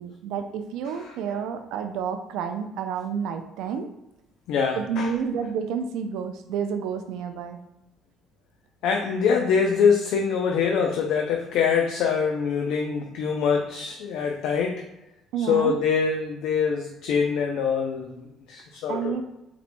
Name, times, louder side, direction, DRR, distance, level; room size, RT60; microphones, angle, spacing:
voice 1, 0.0-3.9 4.8-7.6 15.3-15.8 18.9-19.2, right 7 dB, 80° right, 6 dB, 0.4 m, -30 dB
voice 2, 4.5-5.1 8.8-14.8 15.4-19.1, left 6 dB, 70° left, 2 dB, 0.4 m, -24 dB
4.2 x 2.2 x 4.2 m, 0.91 s
cardioid pair, 170°, 0 cm